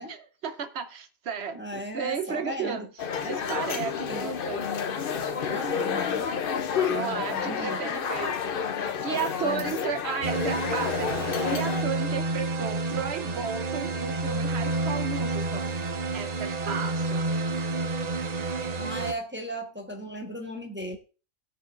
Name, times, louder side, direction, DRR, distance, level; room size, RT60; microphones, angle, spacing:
voice 1, 0.1-4.7 6.8-8.4 9.0-15.7 16.1-17.3, right 6 dB, 60° right, 1.1 m, -34 dB
voice 2, 1.5-2.9 4.1-4.3 5.5-6.3 6.9-7.9 9.4-9.7 18.8-21.0, equal, 10° right, 1.1 m, -36 dB
sound 1, 3.0-11.8, left 7 dB, 50° left, 0.8 m, -30 dB
sound 2, 10.2-19.1, right 3 dB, 40° right, 0.7 m, -29 dB
17.5 x 6.6 x 2.5 m
omnidirectional pair, 1.3 m